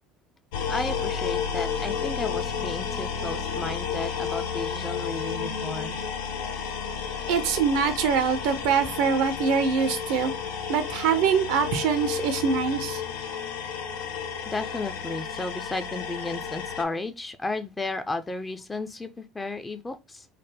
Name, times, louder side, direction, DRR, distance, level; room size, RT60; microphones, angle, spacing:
sound 1, 0.5-16.8, left 6 dB, 80° left, 0.5 m, -32 dB
voice 1, 0.7-6.0 14.4-20.3, left 2 dB, 20° left, 0.5 m, -33 dB
voice 2, 7.3-10.3 10.7-13.0, right 6 dB, 75° right, 0.6 m, -24 dB
3.3 x 2.1 x 3.3 m
hypercardioid pair, 75°, 0 cm